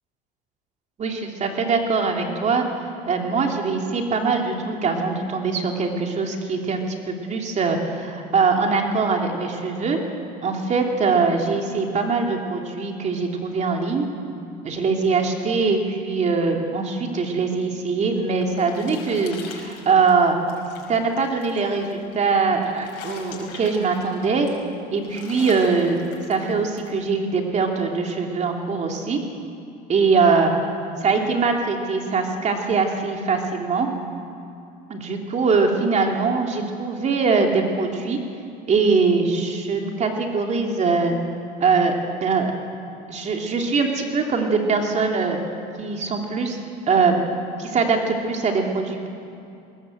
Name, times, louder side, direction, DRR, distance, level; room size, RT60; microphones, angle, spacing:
voice 1, 1.0-2.7 3.1-10.0 10.4-14.1 14.6-20.4 20.9-24.5 24.9-26.0 26.3-29.2 29.9-30.5 31.0-33.9 34.9-38.2 38.7-41.1 41.6-42.5 43.1-45.4 45.8-46.6 46.9-47.2 47.6-49.1, right 4 dB, 35° right, 2 dB, 3.1 m, -22 dB
sound 1, 18.0-26.9, left 6 dB, 75° left, 5.4 m, -44 dB
20.5 x 19.0 x 8.0 m, 2.6 s
supercardioid pair, 105°, 19 cm